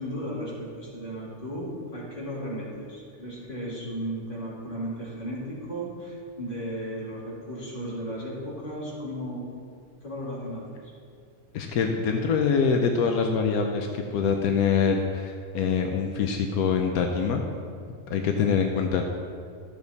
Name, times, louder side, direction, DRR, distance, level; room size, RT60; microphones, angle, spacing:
voice 1, 0.0-9.5 10.0-10.7, equal, 35° left, -8 dB, 3.1 m, -35 dB
voice 2, 11.5-17.4 18.1-19.0, left 6 dB, 85° left, 3 dB, 1.2 m, -24 dB
12.5 x 7.0 x 4.1 m, 2.2 s
omnidirectional pair, 1.5 m